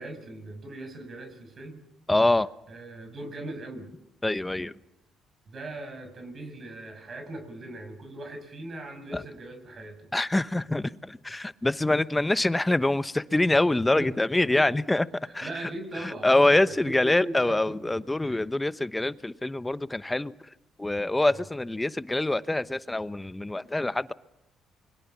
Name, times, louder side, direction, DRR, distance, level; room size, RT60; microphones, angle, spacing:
voice 1, 0.0-1.8 2.7-3.9 5.5-10.1 14.0-15.0 15.4-18.0 18.2-18.5 21.3-21.5, right 2 dB, 45° right, 6.9 m, -40 dB
voice 2, 2.1-2.5 4.2-4.7 9.1-9.2 10.1-15.1 15.3-15.7 16.2-20.3 20.8-24.1, left 2 dB, 15° left, 1.0 m, -25 dB
29.0 x 22.5 x 7.4 m
supercardioid pair, 60°, 0 cm